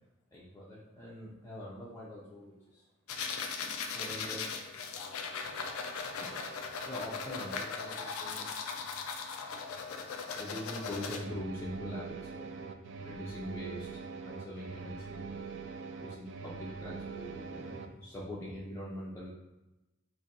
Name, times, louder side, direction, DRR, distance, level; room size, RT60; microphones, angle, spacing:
voice 1, 0.3-2.9 3.9-4.5 5.3-5.6 6.2-6.5 6.8-8.8 10.3-12.5 13.0-15.3 16.0-19.3, left 1 dB, 15° left, -7 dB, 0.4 m, -43 dB
sound 1, 3.1-11.2, left 5 dB, 90° left, 0.4 m, -38 dB
sound 2, 11.1-17.9, right 4 dB, 60° right, 0.3 m, -43 dB
2.6 x 2.6 x 4.0 m, 1.0 s
head